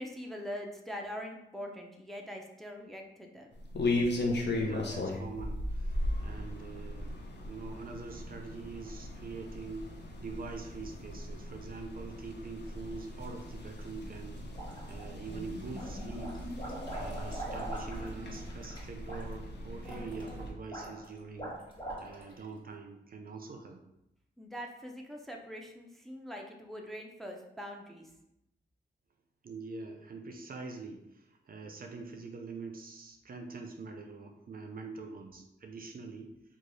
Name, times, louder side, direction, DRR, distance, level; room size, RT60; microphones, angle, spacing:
voice 1, 0.0-3.6 24.4-28.1, equal, ahead, 1 dB, 0.5 m, -43 dB
sound 1, 3.5-20.5, left 1 dB, 65° left, 0.7 m, -37 dB
voice 2, 4.6-7.2 7.5-9.9 10.2-14.5 14.9-16.4 16.9-21.6 22.0-23.8 29.4-36.3, right 4 dB, 50° right, 4 dB, 0.4 m, -44 dB
sound 2, 14.5-15.3 15.7-22.4, right 1 dB, 25° left, 1.5 m, -43 dB
3.1 x 2.3 x 3.9 m, 0.86 s
cardioid pair, 75°, 19 cm